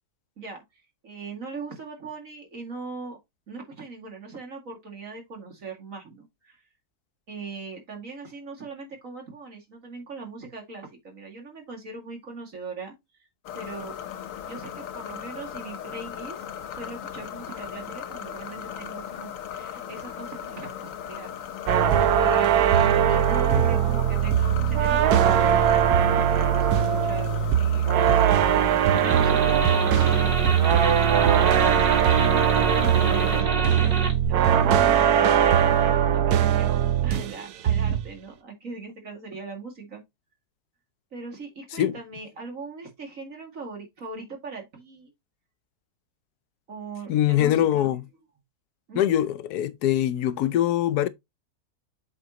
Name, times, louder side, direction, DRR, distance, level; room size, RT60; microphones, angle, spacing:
voice 1, 0.4-3.2 3.5-6.6 7.3-12.9 13.2-13.3 13.5-13.9 14.4-16.4 16.7-21.5 22.1-22.7 23.1-27.9 28.8-31.0 31.2-40.0 41.1-45.1 46.7-48.0 48.9-49.2, right 3 dB, 60° right, 2.6 m, -40 dB
sound 1, 13.4-33.4, left 9 dB, 65° left, 1.1 m, -38 dB
sound 2, 21.7-37.4 37.7-38.1, right 9 dB, 90° right, 1.3 m, -20 dB
sound 3, 28.9-34.3, right 1 dB, 35° right, 1.9 m, -29 dB
voice 2, 47.1-48.0 49.0-51.1, left 12 dB, 85° left, 1.2 m, -23 dB
7.8 x 5.1 x 2.9 m
omnidirectional pair, 1.6 m